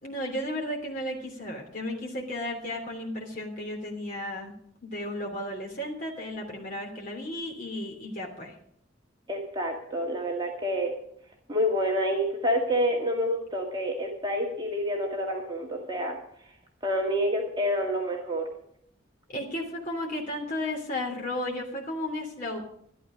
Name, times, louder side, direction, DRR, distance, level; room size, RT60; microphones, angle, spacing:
voice 1, 0.0-4.5 4.8-8.5 19.3-22.6, left 1 dB, 45° left, 0 dB, 3.0 m, -34 dB
voice 2, 9.3-10.9 11.5-16.2 16.8-18.5, equal, 25° right, -1 dB, 1.9 m, -28 dB
12.5 x 12.5 x 5.1 m, 0.67 s
head